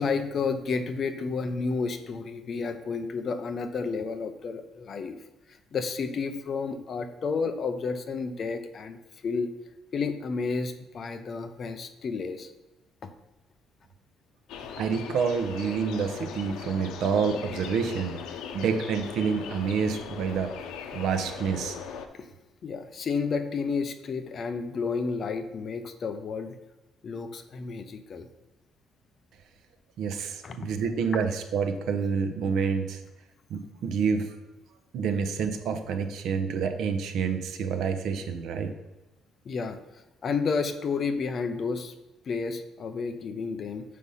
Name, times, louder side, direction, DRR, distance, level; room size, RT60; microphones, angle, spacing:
voice 1, 0.0-5.2 5.5-9.0 9.2-9.5 9.9-12.5 13.0-13.1 22.1-22.3 22.6-26.6 27.0-28.3 30.4-30.6 39.5-39.8 40.2-41.9 42.2-43.8, left 4 dB, 35° left, 9 dB, 0.6 m, -31 dB
sound 1, 14.5-22.1, left 7 dB, 85° left, 0.7 m, -39 dB
voice 2, 14.8-18.2 18.5-20.5 20.9-21.8 30.0-33.0 33.5-34.3 34.9-38.7, right 6 dB, 60° right, 7 dB, 0.8 m, -28 dB
6.5 x 5.3 x 5.5 m, 1.0 s
cardioid pair, 180°, 0 cm